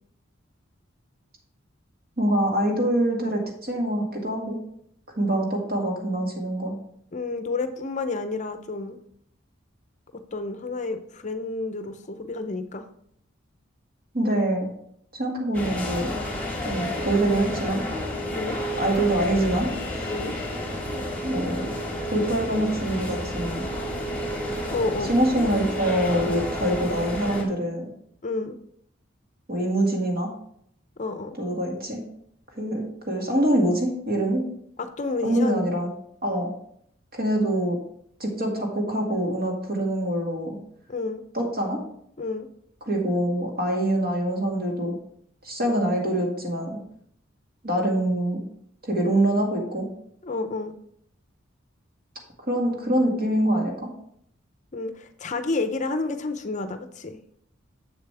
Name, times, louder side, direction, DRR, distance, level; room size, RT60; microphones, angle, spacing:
voice 1, 2.2-4.6 5.2-6.8 14.1-14.7 15.1-16.2 16.6-17.8 18.8-20.1 21.2-21.7 22.1-23.6 25.1-27.9 29.5-30.3 31.4-32.0 32.6-34.4 35.2-35.9 36.2-36.5 37.1-37.8 38.2-40.6 41.3-41.8 42.9-45.0 45.4-46.8 47.6-48.4 48.9-49.9 52.5-53.9, right 1 dB, 50° right, 0 dB, 1.9 m, -25 dB
voice 2, 7.1-9.0 10.3-12.8 18.3-18.6 20.1-20.3 24.7-25.1 28.2-28.6 31.0-31.3 34.8-35.7 40.9-41.2 42.2-42.5 50.2-50.7 54.7-57.2, left 3 dB, 40° left, 9 dB, 0.6 m, -30 dB
sound 1, 15.5-27.4, left 1 dB, 10° left, 1.8 m, -30 dB
7.5 x 7.0 x 3.3 m, 0.69 s
head